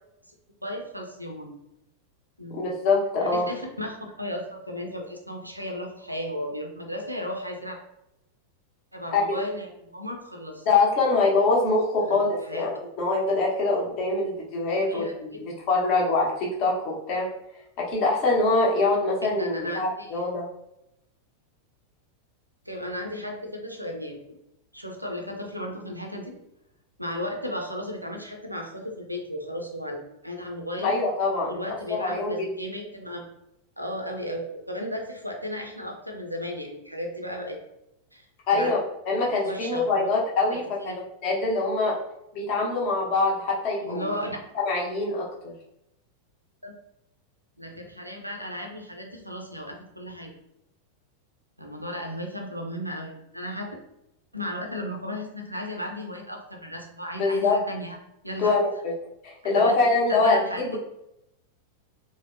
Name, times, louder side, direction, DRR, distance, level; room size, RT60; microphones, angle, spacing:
voice 1, 0.6-1.5 2.4-2.6 3.3-7.8 8.9-10.6 12.1-12.6 14.8-15.4 19.2-20.3 22.7-24.2 24.7-26.3 27.0-31.0 31.5-33.3 33.8-37.6 38.1-38.7 39.1-40.1 40.5-41.0 43.8-44.4 46.6-46.7 47.6-50.3 51.6-53.7 54.3-58.0 58.2-58.6 59.5-59.8 60.1-60.8, equal, 90° right, 2 dB, 0.5 m, -35 dB
voice 2, 2.5-3.5 9.1-9.2 10.7-15.0 15.7-17.3 17.8-20.5 30.8-31.5 32.0-32.3 38.5-38.8 39.1-40.6 41.2-42.0 42.3-44.0 44.5-45.5 57.2-57.6 58.4-58.9 59.2-60.8, left 3 dB, 45° left, -2 dB, 0.8 m, -24 dB
3.3 x 2.1 x 2.5 m, 0.84 s
figure-of-eight pair, 90°, 0 cm